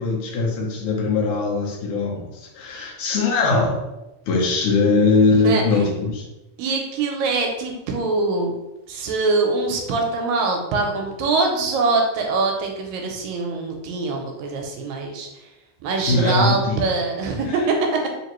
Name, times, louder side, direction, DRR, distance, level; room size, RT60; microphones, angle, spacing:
voice 1, 0.0-3.8 4.3-6.2 16.1-16.8 17.5-17.6, left 3 dB, 70° left, -2 dB, 1.5 m, -21 dB
voice 2, 6.6-8.5 8.9-15.3 15.8-18.0, right 3 dB, 80° right, 2 dB, 1.8 m, -23 dB
4.4 x 2.9 x 3.0 m, 0.97 s
omnidirectional pair, 3.3 m